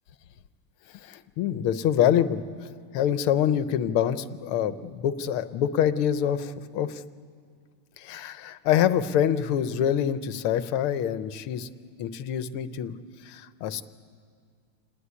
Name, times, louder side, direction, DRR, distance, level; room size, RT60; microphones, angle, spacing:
voice 1, 1.0-2.4 2.9-7.0 8.0-11.7 12.0-13.0 13.2-13.8, left 9 dB, 85° left, 12 dB, 1.7 m, -25 dB
28.0 x 19.5 x 9.8 m, 2.1 s
omnidirectional pair, 2.3 m